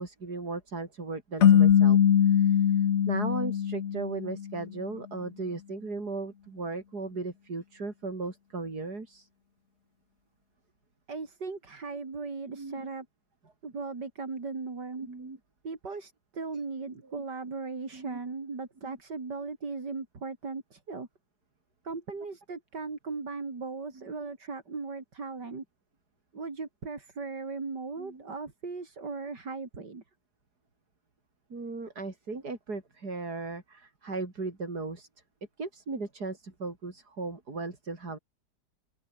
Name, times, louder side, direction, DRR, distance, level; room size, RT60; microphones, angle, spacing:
voice 1, 0.0-2.0 2.2-9.3 12.5-12.9 15.0-15.4 17.1-17.2 17.9-18.2 18.8-19.0 23.9-24.2 28.0-28.3 31.5-35.1 35.6-38.2, right 3 dB, 70° right, 4.7 m, -37 dB
sound 1, 1.4-4.6, left 9 dB, 50° left, 1.0 m, -22 dB
voice 2, 11.1-13.1 13.6-15.1 15.6-21.1 21.8-25.6 26.3-30.0, right 4 dB, 90° right, 4.2 m, -38 dB
open air
omnidirectional pair, 1.8 m